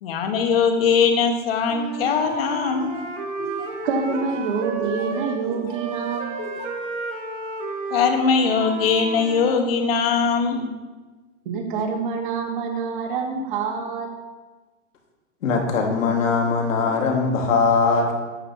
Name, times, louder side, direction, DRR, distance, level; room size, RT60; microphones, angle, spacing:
voice 1, 0.0-2.9 7.9-10.7, left 5 dB, 50° left, 4 dB, 1.4 m, -21 dB
Wind instrument woodwind instrument, 1.7-5.4 5.7-9.6, right 4 dB, 65° right, 1.7 m, -32 dB
Laughter, 2.0-5.9 6.4-6.8, left 2 dB, 25° left, 1.1 m, -37 dB
voice 2, 3.8-6.4 11.4-14.1, right 5 dB, 40° right, 2 dB, 1.5 m, -26 dB
voice 3, 15.4-18.2, left 4 dB, 80° left, 1 dB, 1.9 m, -21 dB
13.0 x 7.8 x 2.9 m, 1.3 s
hypercardioid pair, 170°, 39 cm